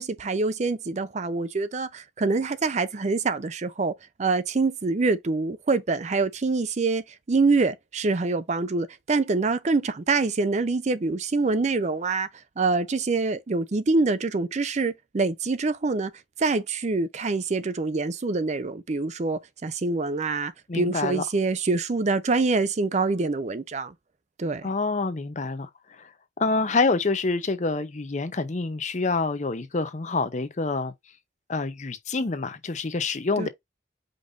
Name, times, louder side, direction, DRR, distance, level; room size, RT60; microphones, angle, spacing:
voice 1, 0.0-3.9 4.2-12.3 12.6-16.1 16.4-23.9 24.4-24.7 33.4-33.5, right 3 dB, 40° right, 0.5 m, -25 dB
voice 2, 20.7-21.2 24.6-25.7 26.0-26.1 26.4-30.9 31.5-33.5, left 3 dB, 40° left, 0.6 m, -27 dB
5.2 x 2.5 x 3.9 m
head